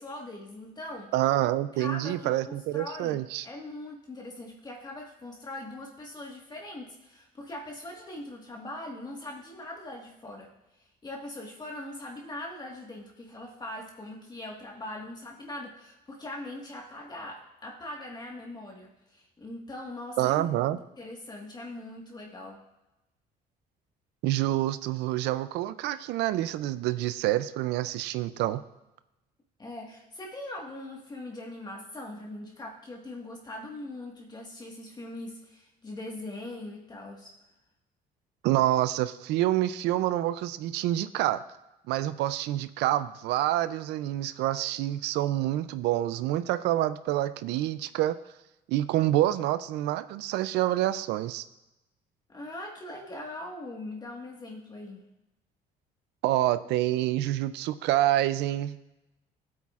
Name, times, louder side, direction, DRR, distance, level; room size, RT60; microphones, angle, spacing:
voice 1, 0.0-1.1 1.7-3.2 3.4-10.5 10.8-22.6 29.6-37.3 52.3-55.1, left 1 dB, 25° left, -1 dB, 1.6 m, -41 dB
voice 2, 1.1-3.5 20.2-20.8 24.2-28.6 38.4-41.4 41.9-48.2 48.7-51.4 56.2-58.8, right 14 dB, 85° right, 13 dB, 0.4 m, -27 dB
15.5 x 8.4 x 2.4 m, 0.95 s
cardioid pair, 110°, 17 cm